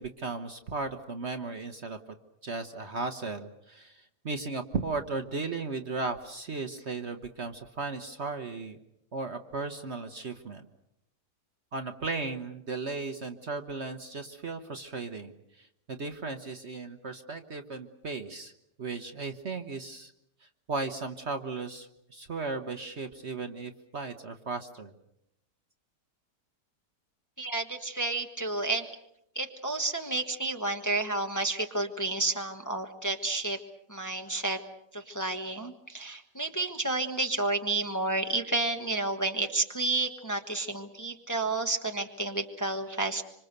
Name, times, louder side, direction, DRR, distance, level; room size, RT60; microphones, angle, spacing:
voice 1, 0.0-2.0 2.4-8.8 9.1-10.7 11.7-18.5 18.8-20.1 20.4-24.9, right 3 dB, 45° right, 7 dB, 1.2 m, -36 dB
voice 2, 27.4-28.9 29.3-33.6 33.9-34.6 34.9-43.2, right 2 dB, 10° left, 5 dB, 1.2 m, -31 dB
26.0 x 25.5 x 6.7 m, 0.77 s
omnidirectional pair, 1.8 m